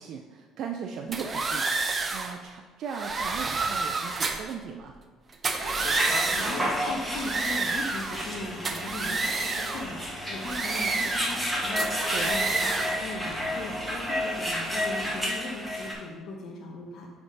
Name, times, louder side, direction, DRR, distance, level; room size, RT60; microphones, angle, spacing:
voice 1, 0.0-4.9 12.1-12.3, right 6 dB, 65° right, 2 dB, 0.4 m, -38 dB
sound 1, 1.1-2.3 2.9-4.5 5.3-6.7 7.1-8.3 8.6-9.9 10.4-11.5 11.8-13.0, right 3 dB, 30° right, 0.7 m, -29 dB
sound 2, 5.6-15.9, equal, ahead, 1.7 m, -31 dB
voice 2, 6.1-17.1, left 2 dB, 65° left, -1 dB, 0.8 m, -39 dB
9.2 x 3.5 x 3.9 m, 1.5 s
cardioid pair, 95°, 0 cm